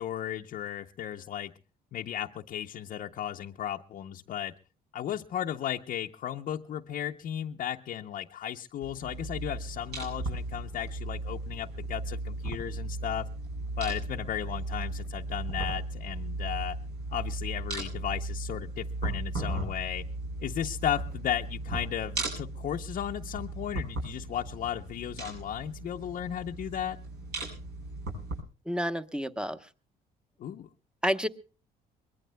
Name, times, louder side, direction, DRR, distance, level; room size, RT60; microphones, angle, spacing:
voice 1, 0.0-1.5 1.9-4.5 4.9-13.3 13.8-16.8 17.1-20.0 20.4-27.0 30.4-30.7, left 10 dB, 50° left, 3 dB, 0.7 m, -35 dB
sound 1, 8.8-28.4, right 2 dB, 75° right, 7.8 m, -36 dB
voice 2, 28.6-29.7 31.0-31.3, equal, 5° right, 10 dB, 0.9 m, -30 dB
23.5 x 21.0 x 2.2 m, 0.35 s
cardioid pair, 110°, 17 cm